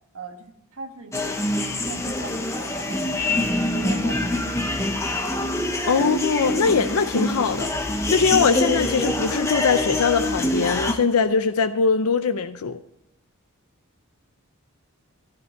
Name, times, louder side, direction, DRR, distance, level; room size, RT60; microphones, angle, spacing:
voice 1, 0.1-4.5, right 2 dB, 80° right, 1.8 m, -39 dB
sound 1, 1.1-10.9, left 1 dB, 15° left, 1.1 m, -25 dB
voice 2, 5.9-7.7 8.1-12.8, left 5 dB, 85° left, 0.6 m, -21 dB
12.5 x 12.0 x 4.5 m
head